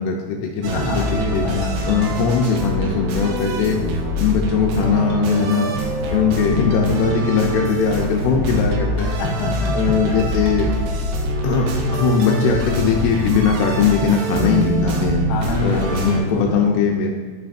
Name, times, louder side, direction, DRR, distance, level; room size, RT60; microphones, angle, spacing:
voice 1, 0.0-1.4 1.9-3.8 4.2-5.7 6.1-9.2 9.7-10.7 11.4-11.7 11.9-15.2 15.6-17.1, left 6 dB, 85° left, 0 dB, 2.6 m, -20 dB
sound 1, 0.6-16.2, right 1 dB, 85° right, 3.0 m, -24 dB
voice 2, 0.7-2.0 9.2-10.2 15.3-16.5, left 2 dB, 70° left, -1 dB, 2.8 m, -26 dB
11.0 x 5.7 x 2.6 m, 1.5 s
omnidirectional pair, 4.7 m